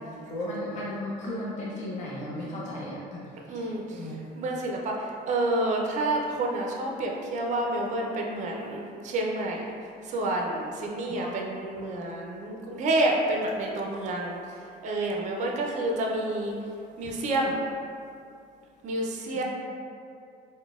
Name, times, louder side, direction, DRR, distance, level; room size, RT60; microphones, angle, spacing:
voice 1, 0.3-3.2 3.5-4.1 11.1-11.4 19.3-19.4, left 1 dB, 45° left, -6 dB, 0.5 m, -35 dB
voice 2, 3.5-9.6 10.0-16.6 17.0-17.6 18.8-19.4, right 1 dB, 45° right, 0 dB, 0.4 m, -29 dB
3.8 x 2.1 x 2.3 m, 2.4 s
cardioid pair, 110°, 17 cm